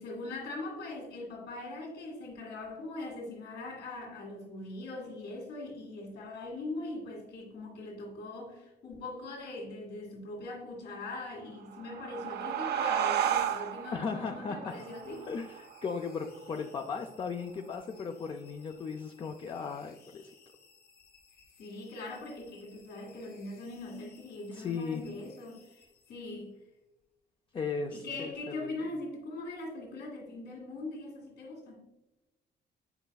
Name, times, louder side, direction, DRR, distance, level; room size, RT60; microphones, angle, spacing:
voice 1, 0.0-15.3 21.6-25.8 26.1-26.6 27.9-31.8, left 2 dB, 75° left, 2.0 m, -41 dB
sound 1, 11.6-16.8, right 9 dB, 70° right, 0.5 m, -33 dB
voice 2, 13.9-14.7 15.3-20.3 24.5-25.0 27.5-28.8, left 5 dB, 30° left, 0.4 m, -37 dB
sound 2, 14.7-26.5, left 5 dB, 55° left, 1.6 m, -62 dB
7.9 x 5.3 x 2.3 m
cardioid pair, 160°, 18 cm